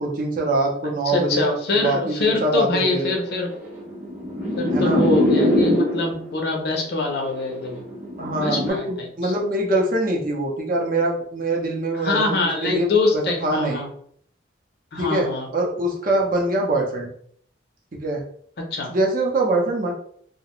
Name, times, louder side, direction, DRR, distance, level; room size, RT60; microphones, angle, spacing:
voice 1, 0.0-3.2 4.7-5.0 8.2-13.8 15.0-15.3 15.5-17.1 17.9-18.2 18.9-19.9, right 2 dB, 50° right, -1 dB, 0.6 m, -24 dB
voice 2, 1.1-3.5 4.6-7.8 8.4-9.3 12.0-13.9 14.9-15.5 18.6-18.9, left 3 dB, 60° left, 2 dB, 0.5 m, -24 dB
sound 1, 3.1-6.3 7.1-8.7, left 1 dB, 10° right, 0.6 m, -22 dB
2.4 x 2.1 x 2.9 m, 0.62 s
head